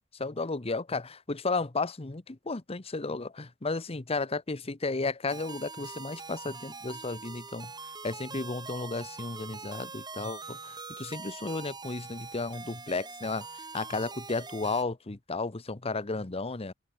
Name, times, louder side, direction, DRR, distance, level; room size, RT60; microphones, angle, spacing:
voice 1, 0.0-7.7 8.0-16.7, left 3 dB, 30° left, 1.0 m, -33 dB
sound 1, 5.3-14.8, right 4 dB, 20° right, 1.7 m, -43 dB
open air
head